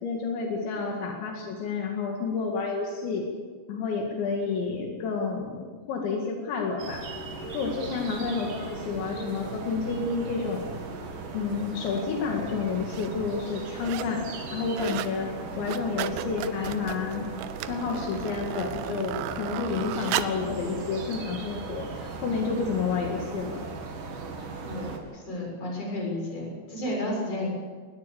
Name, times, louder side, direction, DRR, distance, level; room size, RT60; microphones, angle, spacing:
voice 1, 0.0-3.3 3.7-7.0 7.5-10.7 11.3-14.3 14.5-17.3 17.6-23.6, left 5 dB, 80° left, 1 dB, 4.4 m, -30 dB
sound 1, 6.8-25.0, right 3 dB, 50° right, 3.4 m, -38 dB
sound 2, 11.9-12.0 12.7-13.1 13.5-14.2 14.5-15.2 15.5-20.5 21.1-21.2, right 13 dB, 90° right, 3.2 m, -35 dB
voice 2, 24.6-27.5, left 1 dB, 30° left, -2 dB, 7.7 m, -32 dB
21.0 x 20.5 x 7.1 m, 1.5 s
omnidirectional pair, 5.2 m